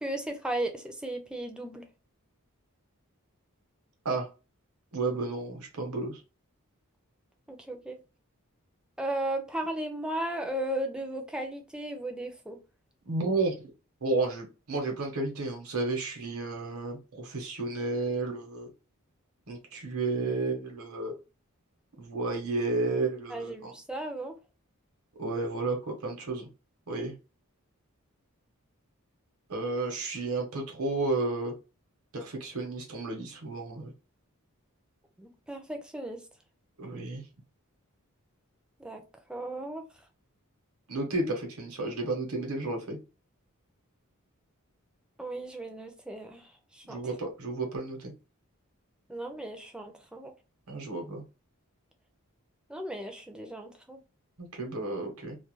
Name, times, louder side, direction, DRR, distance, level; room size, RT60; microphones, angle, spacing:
voice 1, 0.0-1.8 7.5-8.0 9.0-12.6 23.3-24.3 35.2-36.2 38.8-39.0 39.3-39.9 45.2-47.0 49.1-50.3 52.7-54.0, right 1 dB, 5° right, 0.4 m, -35 dB
voice 2, 4.9-6.2 13.0-13.6 14.0-18.7 19.5-21.1 22.0-23.7 25.2-26.5 26.9-27.1 29.5-31.5 32.1-33.9 36.8-37.2 40.9-43.0 46.9-48.1 50.7-51.2 54.4-55.4, right 3 dB, 75° right, 0.8 m, -32 dB
2.4 x 2.1 x 3.0 m
head